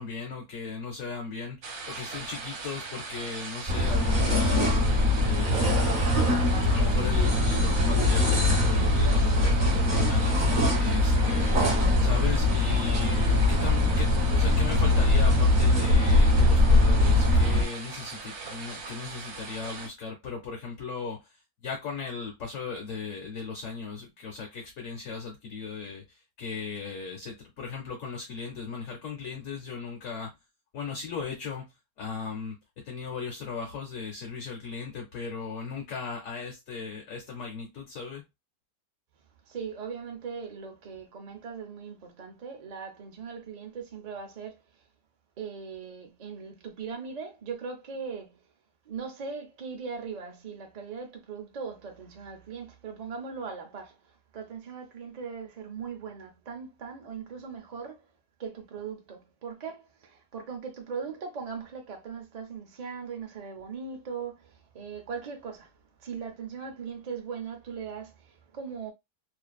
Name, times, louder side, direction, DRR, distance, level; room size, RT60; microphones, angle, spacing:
voice 1, 0.0-4.6 5.2-6.1 6.6-10.4 10.8-11.7 12.0-21.4 21.6-30.3 30.7-31.7 32.0-32.6 32.8-38.2, left 5 dB, 65° left, 1.1 m, -37 dB
sound 1, 1.6-19.9, right 4 dB, 85° right, 1.3 m, -40 dB
sound 2, 3.7-17.6, left 2 dB, 35° right, 1.1 m, -22 dB
voice 2, 39.5-44.6 45.4-48.4 48.9-58.0 58.4-65.7 66.0-68.9, right 5 dB, 50° right, 0.5 m, -39 dB
2.5 x 2.3 x 2.3 m
omnidirectional pair, 1.6 m